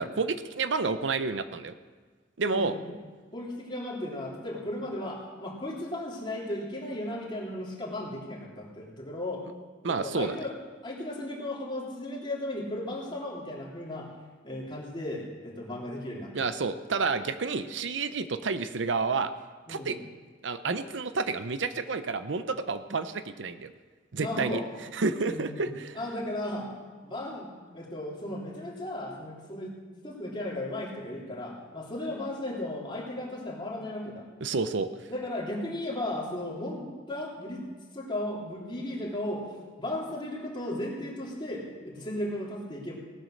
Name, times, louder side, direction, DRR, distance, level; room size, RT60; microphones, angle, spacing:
voice 1, 0.0-1.7 2.4-2.8 9.8-10.3 16.3-19.3 19.7-20.0 20.4-23.7 24.1-24.6 24.9-26.0 34.4-34.9, right 4 dB, 80° right, 12 dB, 0.7 m, -30 dB
voice 2, 2.5-2.8 3.3-9.4 9.8-10.5 10.8-14.1 14.4-16.4 19.7-20.0 24.1-24.7 25.2-26.7 27.0-34.3 35.1-37.6 37.9-39.4 39.8-43.0, left 1 dB, 25° left, -3 dB, 3.2 m, -35 dB
17.5 x 9.1 x 6.5 m, 1.4 s
head